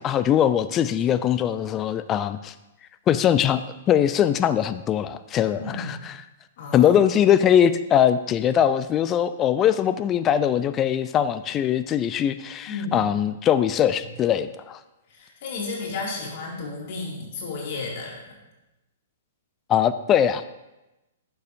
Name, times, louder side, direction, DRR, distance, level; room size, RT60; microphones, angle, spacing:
voice 1, 0.0-2.5 3.1-6.2 6.7-14.8 19.7-20.4, left 9 dB, 25° left, 12 dB, 0.3 m, -21 dB
voice 2, 5.6-5.9 6.6-6.9 12.7-13.1 15.1-18.3, left 3 dB, 50° left, -3 dB, 2.5 m, -33 dB
11.5 x 6.8 x 2.7 m, 0.98 s
figure-of-eight pair, 115°, 0 cm